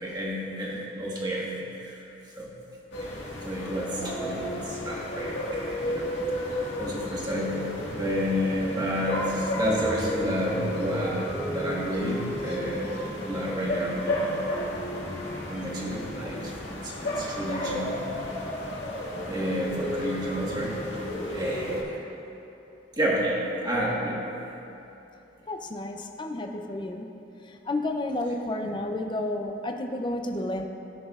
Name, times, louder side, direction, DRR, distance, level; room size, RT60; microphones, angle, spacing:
voice 1, 0.0-1.9 2.4-2.5 3.4-6.4 6.8-14.5 15.5-16.5 16.8-17.9 19.3-20.8 21.3-22.0 23.0-24.2, equal, 20° right, -4 dB, 1.4 m, -30 dB
sound 1, 2.9-21.8, left 1 dB, 75° left, 1.7 m, -33 dB
voice 2, 25.5-27.1 27.4-30.7, left 1 dB, 25° left, 4 dB, 0.5 m, -31 dB
17.0 x 6.1 x 2.4 m, 2.9 s
head